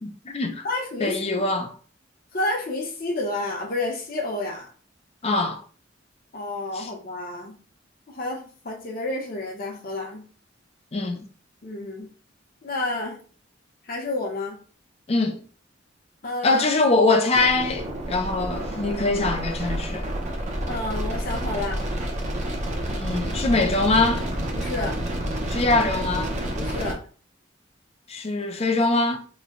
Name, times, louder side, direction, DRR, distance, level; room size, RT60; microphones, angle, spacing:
voice 1, 0.0-0.7 1.0-1.7 5.2-5.6 6.7-6.9 10.9-11.2 15.1-15.4 16.4-20.1 22.9-24.3 25.5-26.3 28.1-29.2, left 3 dB, 35° left, 0.5 m, -23 dB
voice 2, 0.6-1.2 2.3-4.7 6.3-7.5 8.1-10.2 11.6-12.1 12.6-13.2 13.9-14.5 16.2-16.6 20.7-21.8 24.5-25.0 26.5-27.0, left 2 dB, 50° left, 0.9 m, -30 dB
sound 1, 17.3-26.9, right 1 dB, 40° right, 0.7 m, -29 dB
3.1 x 2.2 x 3.8 m
head